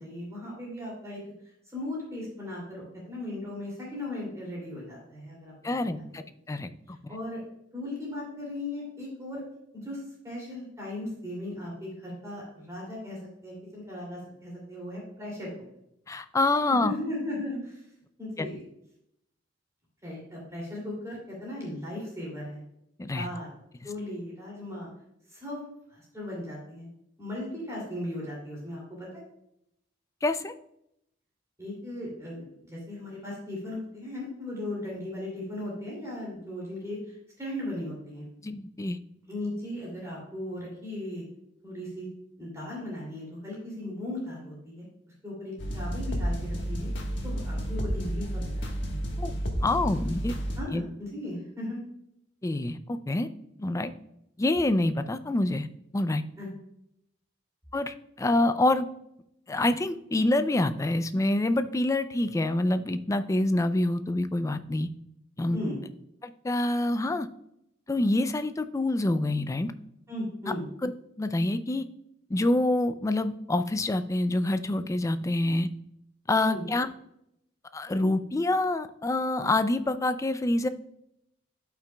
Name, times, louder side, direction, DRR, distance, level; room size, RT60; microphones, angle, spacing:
voice 1, 0.0-5.5 5.8-6.1 7.1-7.4 7.7-9.4 9.7-15.5 16.7-17.8 18.2-18.6 20.0-22.6 23.1-23.5 23.8-24.9 25.3-25.6 25.9-26.9 27.2-29.1 31.6-38.3 39.3-41.2 41.6-42.1 42.4-44.9 45.2-46.9 47.2-49.0 49.9-50.1 50.6-51.8 56.4-56.5 65.5-65.8 70.1-70.7 76.4-76.6, left 1 dB, 15° right, -4 dB, 2.6 m, -37 dB
voice 2, 5.6-7.0 16.1-16.9 18.4-18.5 23.0-23.3 30.2-30.5 38.4-39.0 49.2-50.4 50.7-50.8 52.4-53.3 53.6-53.9 54.4-55.7 55.9-56.2 57.7-58.9 59.5-64.9 65.4-65.6 66.2-67.3 67.9-69.7 70.5-70.6 70.8-70.9 71.2-71.8 72.3-75.7 76.3-76.9 77.7-80.7, left 2 dB, 15° left, 11 dB, 0.3 m, -26 dB
sound 1, 45.6-50.6, equal, 60° left, 1.4 m, -31 dB
12.5 x 5.8 x 2.2 m, 0.78 s
head